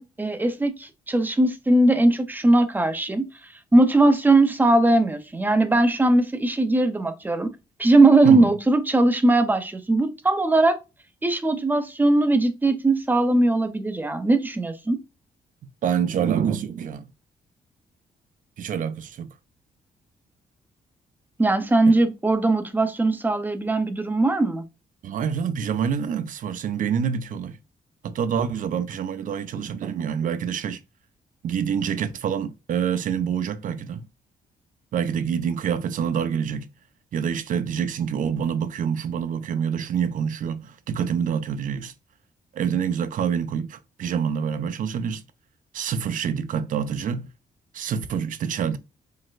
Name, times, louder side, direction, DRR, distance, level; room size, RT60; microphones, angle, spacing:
voice 1, 0.0-3.3 3.7-7.5 7.8-10.8 11.2-15.0 21.4-24.6, right 2 dB, 10° right, 0.6 m, -20 dB
voice 2, 15.8-17.1 18.6-19.3 25.0-27.6 28.0-30.8 31.4-34.1 34.9-36.7 37.1-41.9 42.5-45.2 45.7-47.3 47.7-48.8, right 7 dB, 60° right, 0.5 m, -26 dB
4.9 x 3.9 x 2.4 m
cardioid pair, 130°, 15 cm